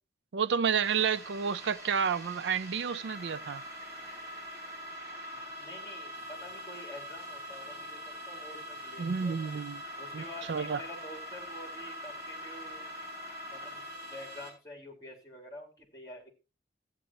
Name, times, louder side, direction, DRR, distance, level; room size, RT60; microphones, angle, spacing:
voice 1, 0.3-3.6 9.0-9.8 10.1-10.2 10.5-10.8, right 6 dB, 80° right, 0.4 m, -30 dB
sound 1, 0.8-14.5, equal, 15° right, 5.2 m, -43 dB
voice 2, 5.3-9.5 10.0-12.9 13.4-16.3, left 1 dB, 20° left, 3.4 m, -48 dB
16.0 x 9.1 x 3.0 m
head